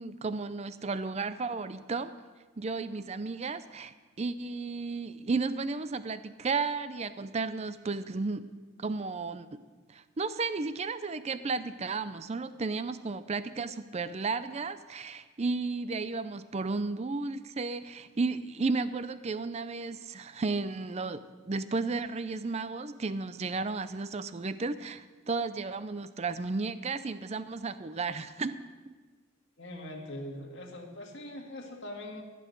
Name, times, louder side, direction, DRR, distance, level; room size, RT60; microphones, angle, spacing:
voice 1, 0.0-2.1 2.6-8.5 8.8-9.6 9.9-28.6, right 4 dB, 30° right, 13 dB, 0.4 m, -33 dB
voice 2, 29.6-32.2, left 1 dB, 60° left, 1 dB, 2.0 m, -42 dB
15.0 x 6.2 x 9.3 m, 1.4 s
head